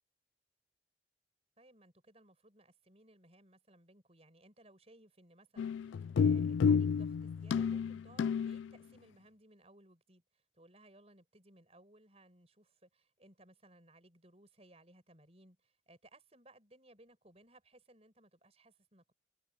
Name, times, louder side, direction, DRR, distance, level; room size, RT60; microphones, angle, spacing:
voice 1, 1.6-19.1, right 1 dB, 35° right, 6.2 m, -62 dB
sound 1, 5.6-8.7, left 6 dB, 80° left, 0.3 m, -30 dB
head